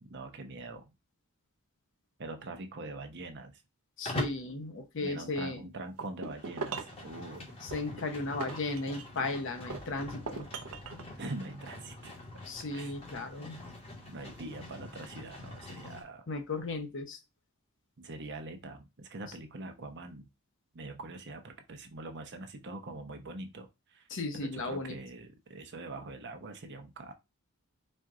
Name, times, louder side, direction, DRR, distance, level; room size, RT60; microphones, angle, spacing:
voice 1, 0.0-0.9 2.2-3.6 5.0-7.5 11.2-12.1 12.7-12.9 14.1-16.2 18.0-20.3 20.7-24.1 24.3-27.1, right 2 dB, 55° right, 0.8 m, -43 dB
voice 2, 4.0-5.6 7.6-10.5 12.5-13.6 16.3-17.2 24.1-25.0, left 3 dB, 60° left, 0.8 m, -35 dB
Livestock farm animals working animals, 4.1-4.5 6.2-16.0, left 1 dB, 30° left, 1.3 m, -43 dB
sound 1, 6.0-7.0 7.7-9.3 9.7-11.1, right 4 dB, 85° right, 0.6 m, -40 dB
4.4 x 2.5 x 3.6 m
head